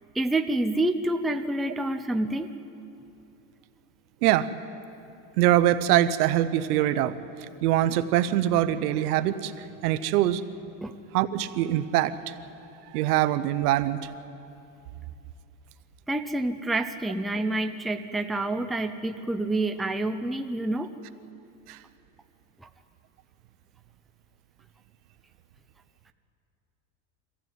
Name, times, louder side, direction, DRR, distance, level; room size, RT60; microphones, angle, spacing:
voice 1, 0.1-2.5 10.8-10.9 16.1-20.9 22.6-22.7, right 2 dB, ahead, 6 dB, 0.5 m, -28 dB
voice 2, 4.2-4.5 5.4-7.2 7.6-10.4 11.1-12.3 12.9-14.1 21.7-21.8, right 13 dB, 75° right, 12 dB, 1.2 m, -23 dB
23.5 x 15.0 x 9.3 m, 2.7 s
supercardioid pair, 130°, 46 cm